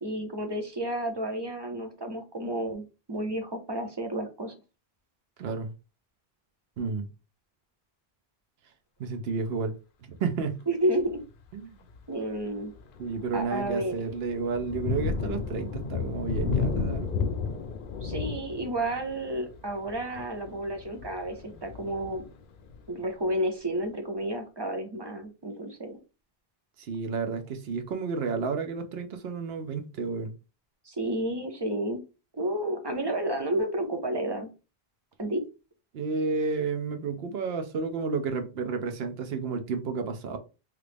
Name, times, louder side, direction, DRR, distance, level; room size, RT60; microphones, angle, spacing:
voice 1, 0.0-4.5 10.7-11.2 12.1-12.7 13.3-13.9 18.0-22.2 22.9-26.0 30.8-32.0 32.4-34.5 35.2-35.4, right 1 dB, 30° right, 0.5 m, -31 dB
voice 2, 5.4-5.7 6.8-7.0 9.0-9.8 10.1-10.6 11.5-11.7 13.0-17.1 26.8-30.3 35.9-40.4, right 4 dB, 75° right, 0.9 m, -31 dB
Thunder, 11.0-11.3 11.9-12.0 12.5-23.0, left 4 dB, 65° left, 0.7 m, -33 dB
3.1 x 2.5 x 3.3 m
omnidirectional pair, 1.0 m